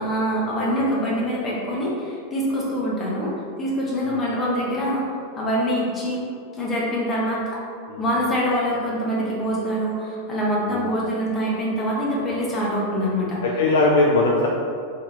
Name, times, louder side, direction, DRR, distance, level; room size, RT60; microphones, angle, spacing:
voice 1, 0.0-3.3 3.6-5.0 5.4-6.2 6.6-7.6 8.0-13.4, equal, 20° left, -5 dB, 1.0 m, -24 dB
voice 2, 0.5-0.9 4.0-4.2 7.9-8.3 10.7-10.9 13.4-14.5, left 2 dB, 55° left, -2 dB, 0.4 m, -21 dB
4.0 x 2.8 x 3.2 m, 2.3 s
figure-of-eight pair, 90°, 0 cm